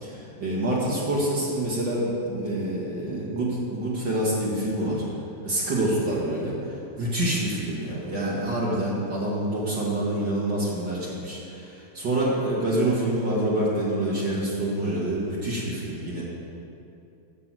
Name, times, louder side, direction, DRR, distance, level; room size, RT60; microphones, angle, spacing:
voice 1, 0.0-5.0 5.4-6.6 7.0-16.2, right 1 dB, 50° right, -6 dB, 1.4 m, -26 dB
9.0 x 6.6 x 7.5 m, 2.7 s
omnidirectional pair, 4.7 m